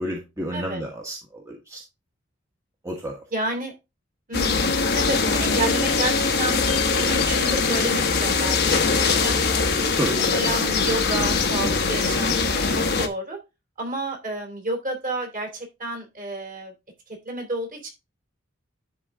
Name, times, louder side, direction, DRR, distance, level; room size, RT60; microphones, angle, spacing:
voice 1, 0.0-1.8 2.8-3.2 9.9-10.3, right 1 dB, 15° right, -2 dB, 1.3 m, -30 dB
voice 2, 3.3-3.7 4.3-9.6 10.3-13.4 13.8-16.7 17.2-17.9, right 2 dB, 45° right, 2 dB, 3.1 m, -30 dB
sound 1, 4.3-13.1, left 4 dB, 55° left, 1.0 m, -22 dB
11.0 x 3.9 x 3.7 m, 0.25 s
head